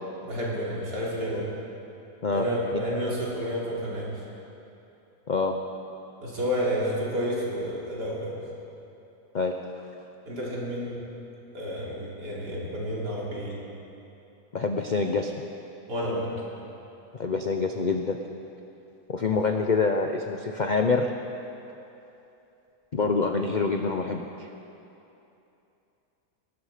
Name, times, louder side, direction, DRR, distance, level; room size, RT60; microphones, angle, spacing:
voice 1, 0.2-1.5 2.3-4.1 6.2-8.4 10.3-11.0 11.5-13.6 15.9-16.3, equal, 90° right, -5 dB, 3.7 m, -30 dB
voice 2, 9.3-9.9 14.5-15.3 17.1-18.2 19.1-21.1 22.9-24.5, left 4 dB, 65° left, 4 dB, 0.4 m, -26 dB
19.0 x 12.5 x 5.0 m, 2.9 s
omnidirectional pair, 1.7 m